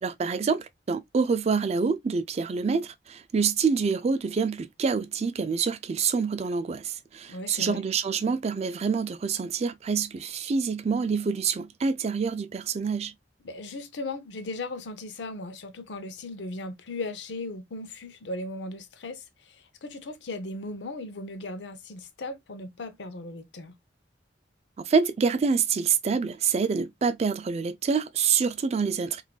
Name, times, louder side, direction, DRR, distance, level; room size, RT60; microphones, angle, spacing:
voice 1, 0.0-13.1 24.8-29.2, right 5 dB, 35° right, 0.3 m, -26 dB
voice 2, 7.2-7.8 13.4-23.8, left 2 dB, 80° left, 0.6 m, -37 dB
3.6 x 2.5 x 2.2 m
head